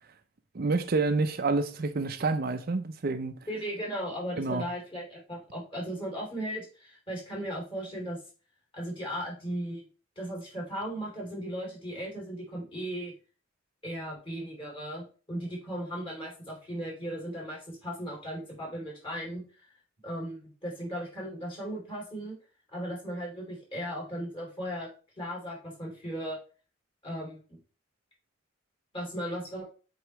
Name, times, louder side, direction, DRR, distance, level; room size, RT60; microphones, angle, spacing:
voice 1, 0.5-3.4 4.4-4.6, right 3 dB, 50° right, 0.6 m, -28 dB
voice 2, 3.5-8.2 8.7-9.8 10.2-13.1 13.8-19.7 20.0-22.3 22.7-24.9 25.2-26.4 27.0-27.6 28.9-29.6, equal, 25° left, 2.9 m, -37 dB
7.9 x 4.6 x 3.1 m
head